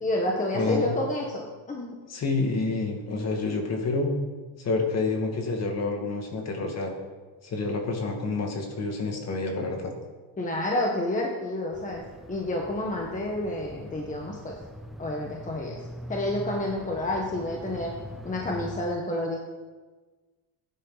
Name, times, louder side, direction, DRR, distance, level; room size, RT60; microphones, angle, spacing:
voice 1, 0.0-2.0 10.4-12.0 12.3-14.6 15.0-15.8 16.1-17.9 18.2-19.4, left 1 dB, 15° left, 0 dB, 1.4 m, -29 dB
voice 2, 0.5-0.9 2.1-4.1 4.6-6.9 7.4-9.9, left 3 dB, 35° left, 2 dB, 2.4 m, -28 dB
sound 1, 11.7-18.9, equal, ahead, 0.6 m, -42 dB
15.5 x 10.0 x 4.1 m, 1.3 s
cardioid pair, 130°, 44 cm